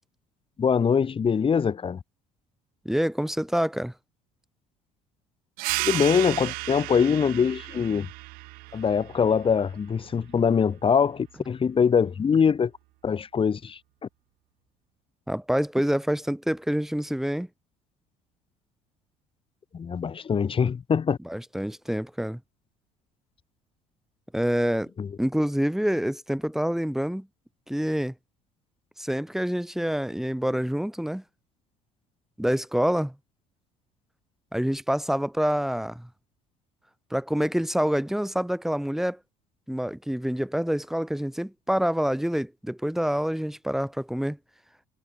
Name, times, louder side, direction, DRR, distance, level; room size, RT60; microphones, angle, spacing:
voice 1, 0.6-2.0 5.8-8.1 8.7-12.7 13.0-13.8 19.7-21.2 25.0-25.1, left 6 dB, 35° left, 2.6 m, -23 dB
voice 2, 2.9-3.9 15.3-17.5 21.3-22.4 24.3-24.9 25.2-27.3 27.7-28.1 29.0-31.2 32.4-33.1 34.5-36.1 37.1-39.2 39.7-44.4, equal, ahead, 7.2 m, -27 dB
sound 1, 5.6-10.7, right 25 dB, 70° right, 1.9 m, -34 dB
hypercardioid pair, 70°, 16 cm